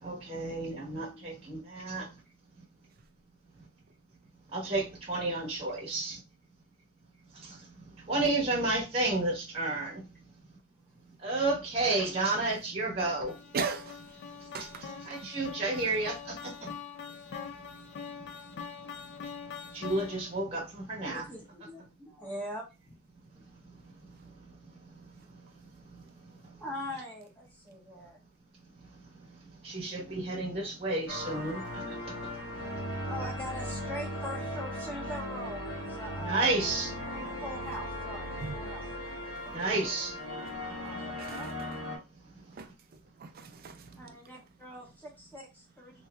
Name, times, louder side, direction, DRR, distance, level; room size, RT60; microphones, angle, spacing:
voice 1, 0.0-2.0 4.5-6.2 8.1-10.0 11.2-13.3 15.0-16.5 19.7-21.2 29.6-31.6 36.2-36.9 39.5-40.1, right 2 dB, 30° right, 1.0 m, -31 dB
sound 1, 13.0-20.4, left 6 dB, 55° left, 0.4 m, -44 dB
voice 2, 13.5-14.0 14.5-15.2 38.4-38.6 41.2-41.7 42.6-42.7 43.2-43.8, right 5 dB, 45° right, 0.4 m, -37 dB
voice 3, 21.0-23.0 26.6-28.2 33.1-36.6 37.1-38.8 39.4-39.9 40.8-41.5 44.0-45.9, equal, 10° left, 1.1 m, -42 dB
sound 2, 31.1-42.0, left 1 dB, 80° left, 1.1 m, -38 dB
3.2 x 2.9 x 2.3 m
head